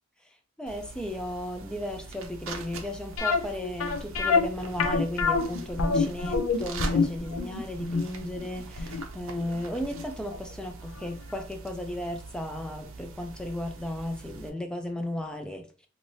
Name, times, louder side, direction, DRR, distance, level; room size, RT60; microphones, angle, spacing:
voice 1, 0.6-15.6, left 1 dB, 5° left, 4 dB, 0.3 m, -35 dB
sound 1, 0.7-14.5, right 4 dB, 90° right, 0.5 m, -43 dB
sound 2, 3.2-10.0 10.3-10.4 11.0-11.1 11.4-11.5, left 4 dB, 85° left, 0.4 m, -26 dB
3.2 x 2.6 x 2.6 m, 0.40 s
head